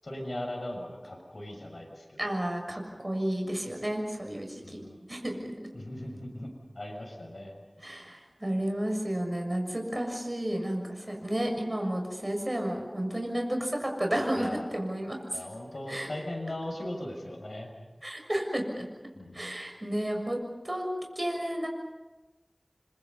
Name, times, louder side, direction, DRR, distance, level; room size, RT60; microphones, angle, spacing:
voice 1, 0.0-2.2 4.6-5.0 5.7-7.6 14.4-14.6 15.3-17.7 19.1-19.5, left 1 dB, 80° left, 1 dB, 6.8 m, -39 dB
voice 2, 2.2-4.8 5.1-5.7 7.8-15.5 15.9-16.1 18.0-18.8 19.3-20.4 20.6-20.8 21.1-21.7, right 1 dB, 30° right, 2 dB, 6.8 m, -32 dB
29.5 x 26.0 x 5.6 m, 1.2 s
wide cardioid pair, 45°, 0 cm